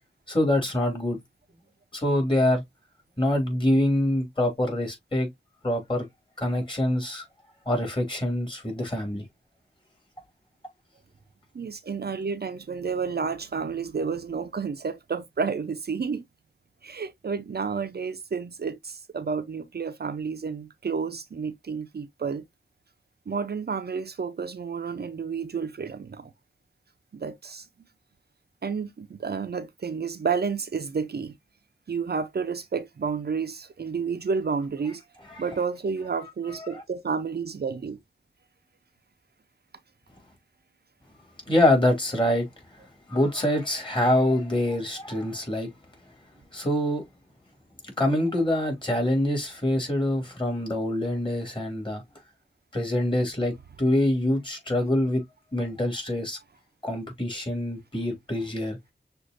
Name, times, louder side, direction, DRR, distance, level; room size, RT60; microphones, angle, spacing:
voice 1, 0.3-1.2 1.9-2.6 3.2-5.3 5.6-6.1 6.4-7.2 7.7-9.2 35.3-35.4 41.5-42.5 43.1-45.7 46.5-47.0 48.0-52.0 52.7-55.2 55.5-56.4 56.8-58.8, left 1 dB, 25° left, 2.6 m, -25 dB
voice 2, 11.5-16.3 16.8-22.4 23.3-26.3 27.1-27.7 28.6-31.3 31.9-35.0 35.4-38.0, right 5 dB, 60° right, 0.6 m, -30 dB
6.4 x 2.6 x 2.5 m
wide cardioid pair, 65°, 19 cm